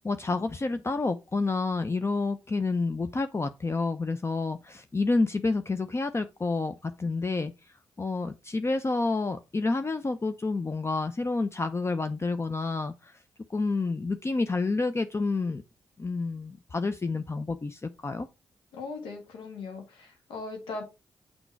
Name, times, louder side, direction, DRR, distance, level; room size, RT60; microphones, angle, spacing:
voice 1, 0.0-7.5 8.0-13.1 13.5-15.6 16.0-18.3, left 3 dB, 30° left, 0.7 m, -29 dB
voice 2, 18.7-20.8, left 3 dB, 85° left, 1.7 m, -39 dB
6.0 x 5.1 x 4.6 m
supercardioid pair, 45°, 8 cm